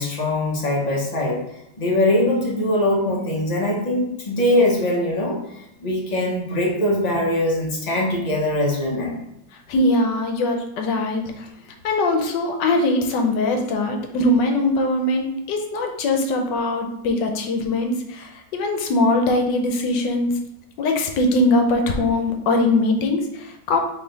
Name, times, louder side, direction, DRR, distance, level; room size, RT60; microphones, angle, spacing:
voice 1, 0.0-1.4 1.8-5.4 5.8-9.1, left 1 dB, 30° left, -2 dB, 0.8 m, -21 dB
voice 2, 9.7-11.5 11.8-20.4 20.8-23.8, left 2 dB, 80° left, 3 dB, 1.4 m, -21 dB
4.0 x 3.1 x 4.0 m, 0.83 s
omnidirectional pair, 1.9 m